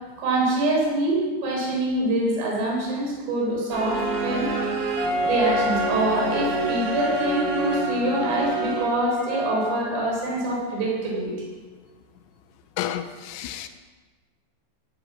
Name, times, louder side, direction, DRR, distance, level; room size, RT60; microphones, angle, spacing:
voice 1, 0.2-4.5 5.2-11.4, right 2 dB, 65° right, -2 dB, 6.2 m, -25 dB
sound 1, 3.7-9.1, right 2 dB, 45° right, 2.1 m, -28 dB
Wind instrument woodwind instrument, 5.0-10.2, left 1 dB, 65° left, 1.1 m, -29 dB
voice 2, 12.8-13.7, left 11 dB, 90° left, 8 dB, 3.1 m, -31 dB
18.5 x 9.0 x 6.1 m, 1.4 s
omnidirectional pair, 5.3 m